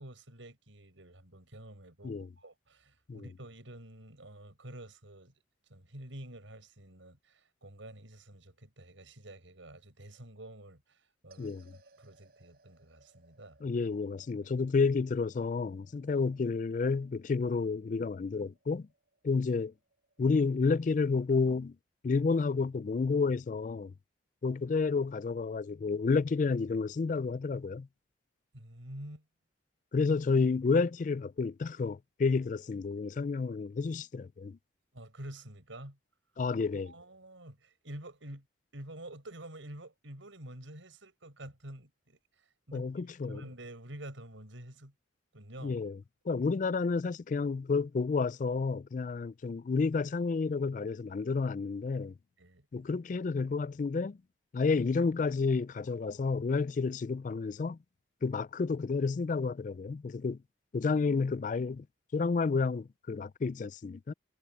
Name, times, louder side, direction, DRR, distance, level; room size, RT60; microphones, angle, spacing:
voice 1, 0.0-5.3 5.7-11.5 12.0-13.6 28.5-29.2 34.9-36.0 36.7-38.5 38.7-42.2 42.7-44.9 45.3-45.8 52.4-52.7, right 1 dB, 85° right, 5.5 m, -48 dB
sound 1, 11.3-21.7, right 3 dB, 50° right, 6.5 m, -66 dB
voice 2, 11.4-11.7 13.6-18.9 19.2-19.7 20.2-21.7 22.0-23.9 24.4-27.9 29.9-34.6 36.4-36.9 42.7-43.4 45.6-46.0 46.3-52.1 52.7-54.2 54.5-57.8 58.2-60.4 60.7-61.9 62.1-64.1, left 4 dB, 40° left, 0.3 m, -30 dB
head